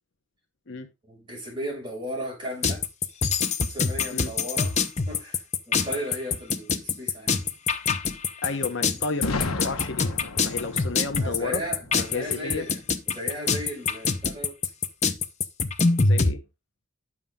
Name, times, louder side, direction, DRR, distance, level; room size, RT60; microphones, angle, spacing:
voice 1, 1.1-2.8 3.6-4.7 5.1-7.4 11.1-12.8 13.1-14.6, equal, 20° right, 6.6 m, -35 dB
sound 1, 2.6-16.3, left 4 dB, 30° left, 0.7 m, -24 dB
voice 2, 8.4-10.1 10.4-11.6 12.0-12.7 16.0-16.4, left 3 dB, 55° left, 1.0 m, -32 dB
Boom, 9.2-13.0, left 3 dB, 80° left, 1.2 m, -34 dB
9.9 x 7.4 x 3.7 m
head